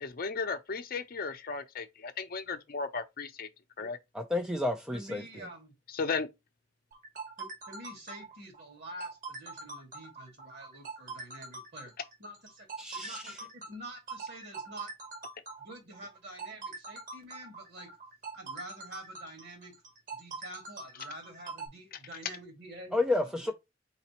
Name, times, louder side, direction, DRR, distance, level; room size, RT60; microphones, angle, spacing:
voice 1, 0.0-3.5 3.8-4.0 5.9-6.3, left 4 dB, 50° left, 0.6 m, -35 dB
voice 2, 4.1-5.2 12.8-13.4 22.9-23.5, left 2 dB, 5° right, 0.4 m, -30 dB
voice 3, 4.9-5.7 7.4-11.9 12.2-14.9 15.6-18.0 18.3-19.7 20.1-23.0 23.4-23.5, right 1 dB, 60° right, 1.9 m, -47 dB
sound 1, 6.9-21.7, right 4 dB, 45° right, 1.2 m, -43 dB
4.1 x 4.0 x 2.9 m
head